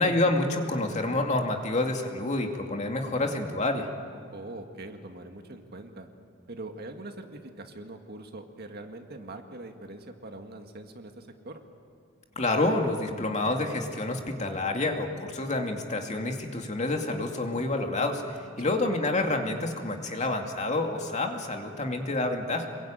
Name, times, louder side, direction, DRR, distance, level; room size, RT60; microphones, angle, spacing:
voice 1, 0.0-3.9 12.4-22.7, left 2 dB, 35° left, 3 dB, 2.5 m, -28 dB
voice 2, 4.3-6.1 6.5-11.6 18.6-18.8, right 2 dB, 50° right, 5 dB, 2.0 m, -42 dB
27.0 x 22.0 x 9.0 m, 2.3 s
head